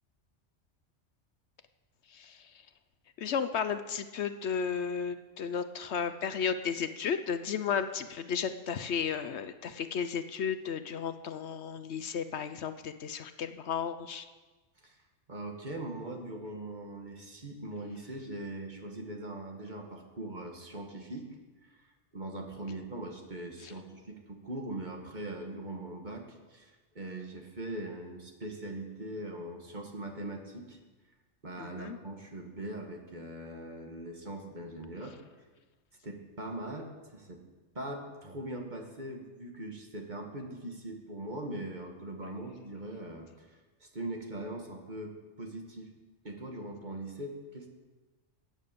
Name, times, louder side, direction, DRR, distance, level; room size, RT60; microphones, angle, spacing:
voice 1, 2.1-2.5 3.2-14.3 31.6-32.0, left 7 dB, 65° left, 11 dB, 0.9 m, -34 dB
voice 2, 15.3-21.3 21.6-30.8 31.4-35.2 36.0-37.4 37.8-45.9 46.2-47.7, right 1 dB, 40° right, 3 dB, 1.8 m, -41 dB
15.0 x 8.9 x 6.8 m, 1.3 s
omnidirectional pair, 1.2 m